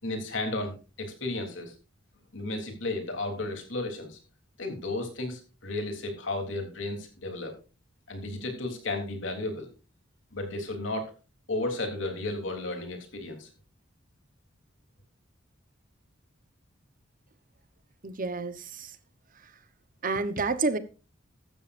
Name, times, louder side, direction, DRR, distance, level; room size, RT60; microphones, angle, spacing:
voice 1, 0.0-1.7 2.3-4.2 4.6-7.5 8.1-9.7 10.3-11.1 11.5-13.5, left 2 dB, 70° left, 3.4 m, -33 dB
voice 2, 18.0-18.9 20.0-20.8, right 3 dB, 45° right, 1.1 m, -29 dB
15.0 x 12.5 x 2.6 m
head